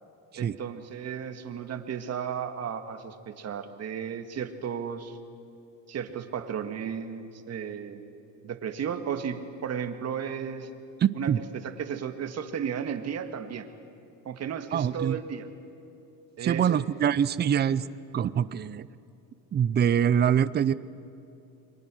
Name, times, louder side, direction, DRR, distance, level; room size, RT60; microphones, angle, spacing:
voice 1, 0.4-5.2 5.9-8.0 8.4-10.7 11.2-13.7 14.3-15.5 16.4-16.8, right 7 dB, 45° right, 7 dB, 1.9 m, -34 dB
voice 2, 11.0-11.4 14.7-15.2 16.4-17.8 18.1-18.9 19.5-20.7, right 8 dB, 25° right, 16 dB, 0.6 m, -24 dB
29.5 x 23.5 x 6.3 m, 2.7 s
cardioid pair, 125°, 37 cm